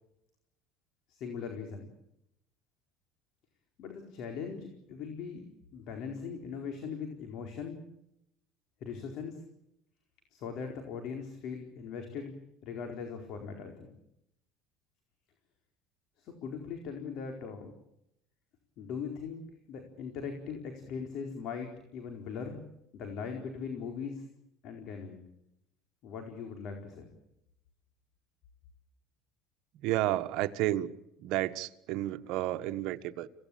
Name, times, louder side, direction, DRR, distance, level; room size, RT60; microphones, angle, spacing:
voice 1, 1.1-1.9 3.8-5.4 5.7-7.8 8.8-9.4 10.3-12.3 12.6-13.9 16.2-17.7 18.8-19.4 19.7-22.6 22.9-24.2 24.6-25.2 26.0-27.1, left 6 dB, 60° left, 4 dB, 4.5 m, -40 dB
voice 2, 29.8-30.9 31.2-33.3, right 14 dB, 65° right, 9 dB, 1.5 m, -31 dB
28.5 x 18.0 x 8.8 m, 0.82 s
supercardioid pair, 105°, 0 cm